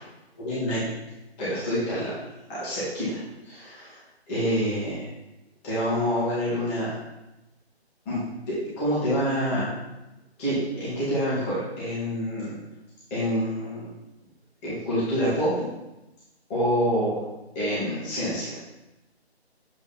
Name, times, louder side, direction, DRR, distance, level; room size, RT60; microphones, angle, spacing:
voice 1, 0.4-0.9 1.4-2.1 2.5-3.2 3.4-4.0 4.3-5.1 5.6-6.9 8.1-8.2 8.5-9.7 10.4-12.5 13.1-13.9 14.6-15.6 16.5-17.2 17.6-18.6, equal, 10° left, -10 dB, 2.0 m, -27 dB
7.8 x 3.9 x 4.3 m, 0.98 s
figure-of-eight pair, 155°, 33 cm